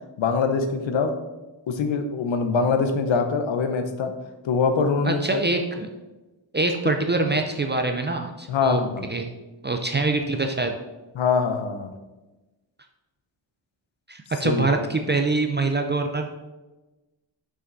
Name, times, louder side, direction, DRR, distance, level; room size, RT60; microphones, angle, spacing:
voice 1, 0.2-1.1 1.7-4.1 4.4-5.4 8.5-9.1 11.1-11.9 14.4-14.7, left 5 dB, 80° left, 7 dB, 0.9 m, -23 dB
voice 2, 5.0-5.9 6.5-8.8 9.1-9.3 9.6-10.8 14.1-16.3, right 3 dB, 25° right, 4 dB, 0.4 m, -24 dB
6.2 x 5.8 x 3.9 m, 1.1 s
wide cardioid pair, 175°, 45 cm